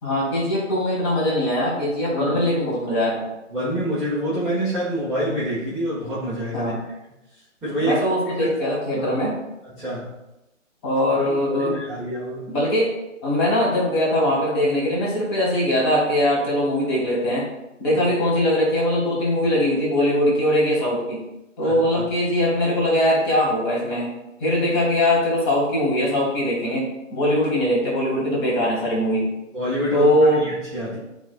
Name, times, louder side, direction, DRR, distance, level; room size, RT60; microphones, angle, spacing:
voice 1, 0.0-3.2 6.5-6.8 7.8-9.4 10.8-11.7 12.5-12.9 13.2-17.5 17.8-21.3 21.6-24.1 24.4-29.3 29.9-30.5, left 1 dB, 20° left, -3 dB, 1.6 m, -21 dB
voice 2, 3.5-6.7 7.6-8.0 8.4-8.6 9.0-9.1 9.7-10.1 11.2-12.5 21.6-22.0 29.5-30.1 30.4-31.0, right 1 dB, ahead, -16 dB, 0.9 m, -27 dB
11.0 x 4.0 x 2.2 m, 0.94 s
figure-of-eight pair, 150°, 39 cm